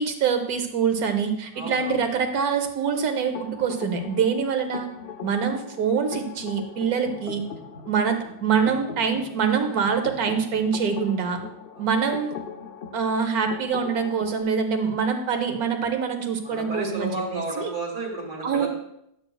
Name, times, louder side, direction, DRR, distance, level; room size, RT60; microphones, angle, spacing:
voice 1, 0.0-4.9 5.2-7.4 7.9-11.4 11.8-12.4 12.9-17.7 18.4-18.7, right 6 dB, 70° right, 6 dB, 1.4 m, -25 dB
voice 2, 1.5-2.0 11.7-11.9 16.4-18.7, right 2 dB, 50° right, -3 dB, 2.0 m, -32 dB
sound 1, 3.3-14.4, left 6 dB, 50° left, 0.7 m, -40 dB
11.0 x 7.7 x 2.3 m, 0.77 s
omnidirectional pair, 1.7 m